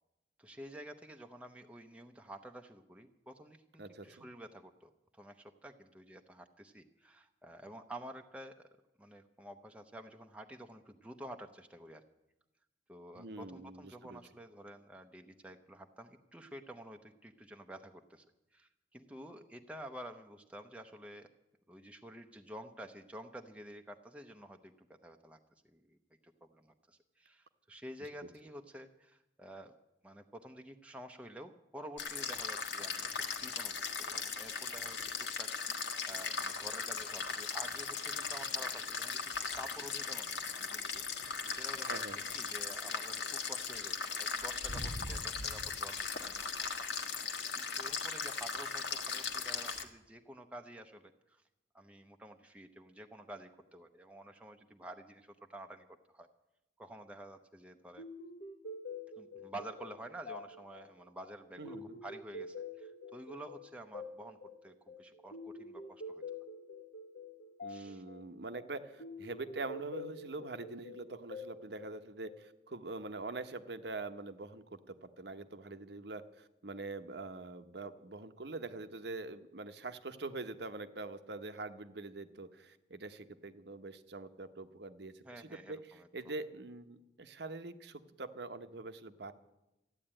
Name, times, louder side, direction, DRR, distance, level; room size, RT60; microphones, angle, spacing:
voice 1, 0.4-8.5 9.0-12.0 12.9-18.2 18.5-21.3 21.7-25.4 25.7-26.0 26.2-29.7 30.0-41.0 41.3-42.0 42.3-46.9 47.6-51.4 51.7-55.9 56.1-56.3 56.8-58.0 59.2-66.2 67.7-68.0 85.2-86.3, right 1 dB, 5° right, 4 dB, 0.7 m, -50 dB
voice 2, 3.8-4.3 13.1-14.2 41.9-42.3 61.6-62.0 67.6-89.3, right 3 dB, 65° right, 10 dB, 1.0 m, -44 dB
sound 1, 32.0-49.8, left 5 dB, 80° left, 1.4 m, -38 dB
sound 2, 58.0-72.7, left 2 dB, 50° left, 1.2 m, -48 dB
14.0 x 9.9 x 8.8 m, 0.94 s
head